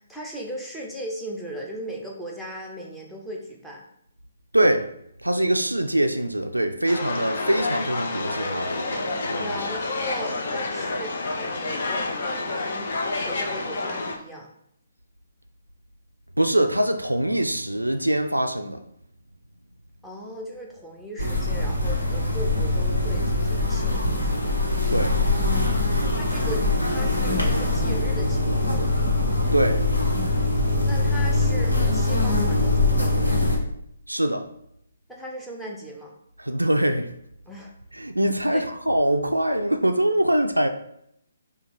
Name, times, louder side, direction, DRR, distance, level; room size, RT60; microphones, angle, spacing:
voice 1, 0.0-3.8 9.4-14.5 20.0-24.6 25.7-28.9 30.5-33.4 35.1-36.1 37.5-37.7 38.5-38.6, equal, 5° left, -2 dB, 0.7 m, -38 dB
voice 2, 4.5-4.9 5.2-9.7 16.4-18.8 24.9-25.2 29.5-29.8 34.1-34.5 36.4-37.1 37.9-40.7, right 1 dB, 90° right, 6 dB, 0.3 m, -23 dB
sound 1, 6.9-14.2, left 2 dB, 50° left, 0.6 m, -29 dB
bees in meadow close to a hive, 21.2-33.6, left 2 dB, 85° left, 1.2 m, -23 dB
5.0 x 2.3 x 3.1 m, 0.74 s
figure-of-eight pair, 135°, 0 cm